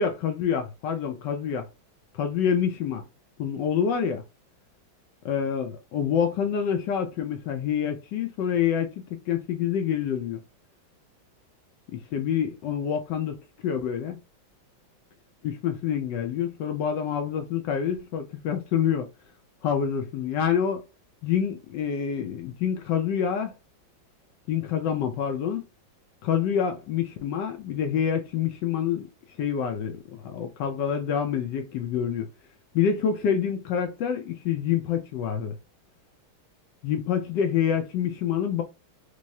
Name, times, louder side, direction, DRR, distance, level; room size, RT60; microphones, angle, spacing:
voice 1, 0.0-1.7 2.1-3.0 3.4-4.2 5.2-10.4 11.9-13.4 13.6-14.2 15.4-19.1 19.6-20.8 21.2-23.5 24.5-25.6 26.2-29.1 29.4-32.3 32.7-35.6 36.8-38.6, left 8 dB, 75° left, 1.1 m, -27 dB
4.6 x 2.0 x 2.6 m
omnidirectional pair, 2.2 m